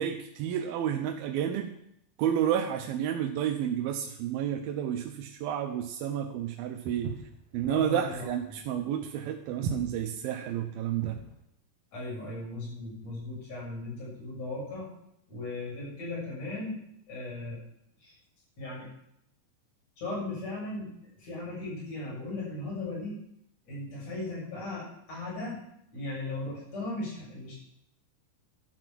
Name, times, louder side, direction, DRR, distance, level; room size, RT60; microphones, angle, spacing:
voice 1, 0.0-1.7 2.2-7.1 7.5-11.2, right 9 dB, 90° right, 5 dB, 2.7 m, -31 dB
Walk footsteps, 6.9-11.3, right 6 dB, 55° right, 2.9 m, -38 dB
voice 2, 7.7-8.3 11.9-14.9 15.3-16.8 17.1-17.6 18.0-18.1 18.6-18.9 20.0-20.9 21.2-23.2 23.6-25.6 25.9-27.6, left 2 dB, 45° left, -6 dB, 8.5 m, -37 dB
12.0 x 11.0 x 6.0 m, 0.76 s
omnidirectional pair, 4.2 m